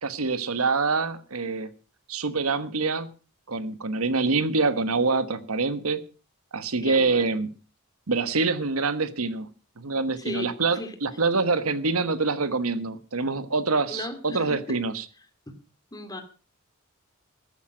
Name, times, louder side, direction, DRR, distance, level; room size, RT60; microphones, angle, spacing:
voice 1, 0.0-1.7 2.1-3.1 3.5-6.0 6.5-7.5 8.1-9.5 9.8-15.0, right 4 dB, 85° right, 1.3 m, -25 dB
voice 2, 6.8-7.3 10.2-11.0 13.9-14.8 15.5-15.6 15.9-16.2, left 1 dB, 20° left, 2.4 m, -37 dB
14.0 x 12.5 x 5.0 m
head